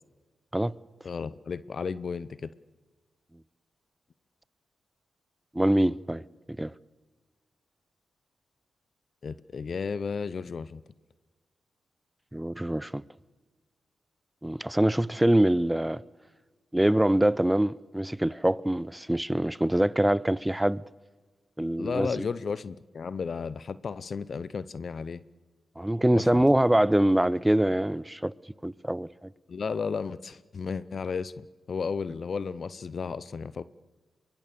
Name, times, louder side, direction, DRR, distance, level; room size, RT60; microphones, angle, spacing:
voice 1, 1.0-2.5 9.2-10.8 21.8-25.2 26.1-26.4 29.5-33.6, left 5 dB, 60° left, 0.7 m, -33 dB
voice 2, 5.5-6.2 6.6-6.7 12.3-13.0 14.4-16.0 16.7-20.8 21.6-22.1 25.8-28.3 28.6-29.3, right 1 dB, 10° right, 0.7 m, -24 dB
23.5 x 21.0 x 6.9 m
supercardioid pair, 45°, 0 cm